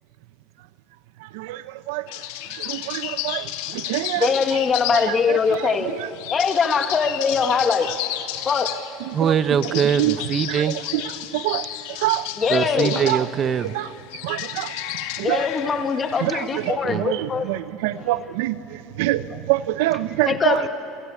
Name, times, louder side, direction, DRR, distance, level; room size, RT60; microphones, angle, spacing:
voice 1, 1.3-2.1 2.5-4.3 5.0-5.4 9.2-9.3 10.0-10.1 11.3-11.7 12.0-12.3 12.9-13.2 13.7-13.9 14.2-14.7 15.2-15.5 16.2-18.6 19.0-20.7, right 16 dB, 80° right, 14 dB, 0.8 m, -25 dB
sound 1, 2.1-16.7, left 13 dB, 80° left, 1.8 m, -33 dB
voice 2, 4.1-6.0 6.3-7.9 8.4-8.7 12.4-13.0 15.2-17.5 18.0-18.1 19.3-19.4 20.2-20.7, left 5 dB, 25° left, 7 dB, 1.7 m, -22 dB
voice 3, 9.1-10.7 12.5-13.8 16.9-17.1, right 7 dB, 30° right, 12 dB, 0.9 m, -22 dB
28.0 x 24.5 x 8.5 m, 2.6 s
supercardioid pair, 130°, 0 cm